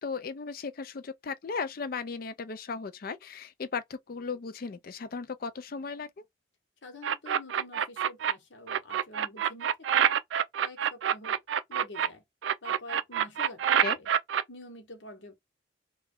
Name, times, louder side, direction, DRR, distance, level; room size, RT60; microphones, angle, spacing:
voice 1, 0.0-6.2 13.8-14.0, left 5 dB, 50° left, 0.4 m, -36 dB
voice 2, 6.8-10.1 10.6-11.4 11.7-12.2 12.6-14.1 14.5-15.3, left 2 dB, 70° left, 1.0 m, -47 dB
sound 1, 7.0-8.3 8.7-12.1 12.4-14.4, right 9 dB, 75° right, 0.3 m, -26 dB
3.1 x 2.2 x 3.6 m
head